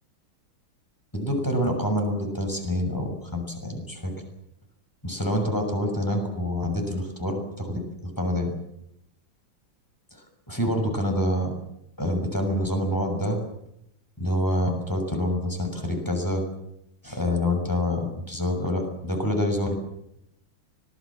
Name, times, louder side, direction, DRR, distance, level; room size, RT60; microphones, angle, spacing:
voice 1, 1.1-4.1 5.0-8.5 10.1-11.5 12.0-13.4 14.2-16.4 17.0-19.8, left 1 dB, 10° left, 3 dB, 6.7 m, -27 dB
25.0 x 20.5 x 7.6 m, 0.78 s
omnidirectional pair, 2.2 m